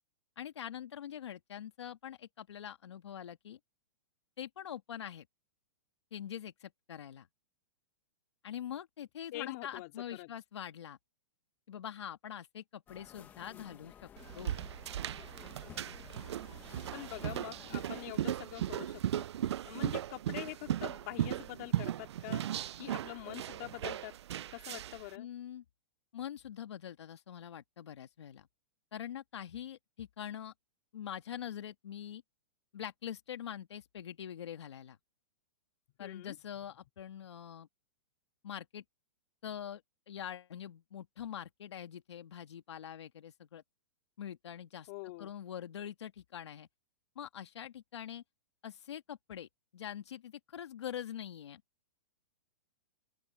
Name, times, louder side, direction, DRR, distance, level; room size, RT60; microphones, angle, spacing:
voice 1, 0.4-3.6 4.4-5.3 6.1-7.3 8.4-11.0 11.7-14.1 14.3-14.6 25.2-25.6 26.1-28.5 28.9-30.5 30.9-32.2 32.7-35.0 36.0-37.7 38.4-38.8 39.4-39.8 40.1-43.6 44.2-44.9 45.2-46.7 47.2-48.2 48.6-51.6, left 10 dB, 80° left, 2.4 m, -44 dB
voice 2, 9.3-10.3 16.9-19.3 19.6-22.4 22.8-24.1 24.5-25.3 36.0-36.4 44.9-45.3, left 21 dB, 30° left, 2.4 m, -45 dB
sound 1, 12.9-18.1, left 9 dB, 10° left, 0.9 m, -54 dB
sound 2, 14.2-25.1, right 11 dB, 75° right, 0.4 m, -37 dB
open air
hypercardioid pair, 175°, 14 cm